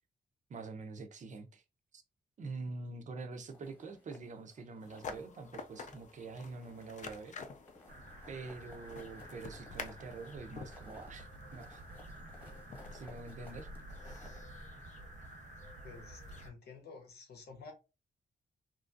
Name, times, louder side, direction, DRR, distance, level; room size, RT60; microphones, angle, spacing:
voice 1, 0.5-1.6 1.9-2.0 2.4-7.3 8.3-11.8 12.9-13.7, right 3 dB, 50° right, 0.5 m, -45 dB
sound 1, 3.5-5.2 5.6-6.2 6.5-14.4, left 2 dB, 15° left, 1.1 m, -59 dB
sound 2, 4.8-16.5, left 5 dB, 50° left, 0.5 m, -51 dB
sound 3, 7.9-16.5, right 1 dB, 75° right, 0.9 m, -50 dB
voice 2, 15.8-17.7, left 4 dB, 90° left, 0.9 m, -51 dB
2.9 x 2.5 x 2.4 m
wide cardioid pair, 130°, 16 cm